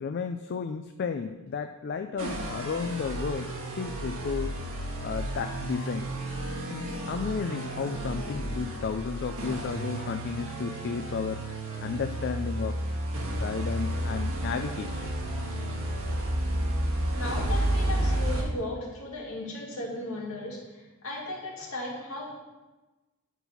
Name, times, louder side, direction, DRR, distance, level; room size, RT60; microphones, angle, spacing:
voice 1, 0.0-6.1 6.7-12.8 13.3-15.1, left 5 dB, 50° left, 7 dB, 0.4 m, -33 dB
sound 1, 2.2-18.4, right 1 dB, 70° right, 1.8 m, -31 dB
voice 2, 17.1-22.3, left 2 dB, 70° left, -4 dB, 2.4 m, -36 dB
9.3 x 4.1 x 5.6 m, 1.1 s
head